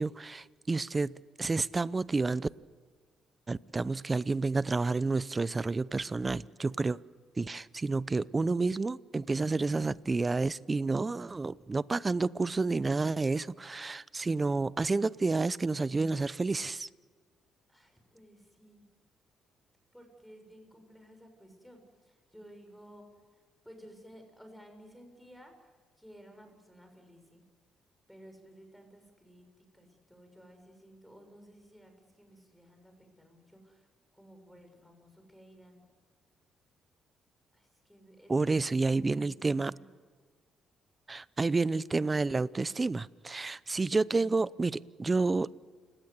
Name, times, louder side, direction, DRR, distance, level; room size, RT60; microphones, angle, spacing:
voice 1, 0.0-2.5 3.5-7.0 7.4-16.9 38.3-39.7 41.1-45.5, right 3 dB, 25° right, 19 dB, 0.6 m, -30 dB
voice 2, 6.2-6.8 17.7-18.8 19.9-23.0 23.6-25.7 26.0-27.4 28.1-33.9 34.1-35.9 37.5-39.9, equal, ahead, 5 dB, 6.7 m, -55 dB
29.5 x 18.0 x 8.2 m, 1.5 s
cardioid pair, 90°, 0 cm